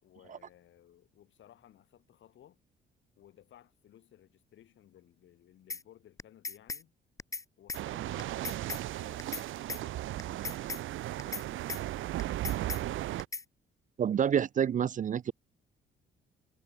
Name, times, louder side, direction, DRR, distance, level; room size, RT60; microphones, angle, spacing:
voice 1, 0.0-2.6 3.2-6.9 7.6-13.1, left 11 dB, 70° left, 5.2 m, -59 dB
sound 1, 5.7-5.8 6.2-6.8 7.2-7.4 7.7-7.8 8.2-8.8 9.2-9.4 9.7-9.8 10.2-10.8 11.2-11.4 11.7-11.8 12.2-12.8 13.2-13.4, left 4 dB, 15° left, 0.4 m, -38 dB
sound 2, 7.7-13.3, right 15 dB, 80° right, 1.2 m, -36 dB
voice 2, 14.0-15.3, right 8 dB, 40° right, 0.5 m, -28 dB
cardioid pair, 90°, 20 cm